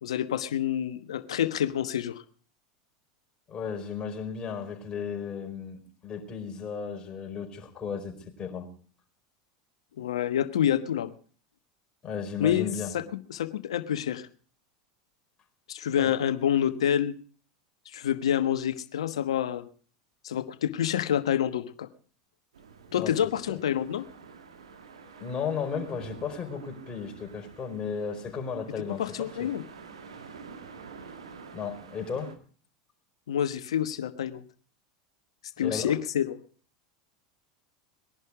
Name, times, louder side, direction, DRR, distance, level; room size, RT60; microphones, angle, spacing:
voice 1, 0.0-2.2 10.0-11.1 12.4-13.0 13.3-14.3 15.7-17.1 17.9-19.7 20.2-21.9 22.9-24.1 28.9-29.6 33.3-34.4 35.6-36.4, left 10 dB, 80° left, 12 dB, 1.2 m, -27 dB
voice 2, 3.5-8.7 12.0-12.9 15.9-16.1 22.9-23.1 23.5-23.6 25.2-29.5 31.5-32.4 35.6-36.0, left 6 dB, 30° left, 3 dB, 4.9 m, -35 dB
sound 1, 22.5-32.4, right 5 dB, 90° right, 1.9 m, -48 dB
20.5 x 11.0 x 4.9 m, 0.41 s
hypercardioid pair, 90°, 3 cm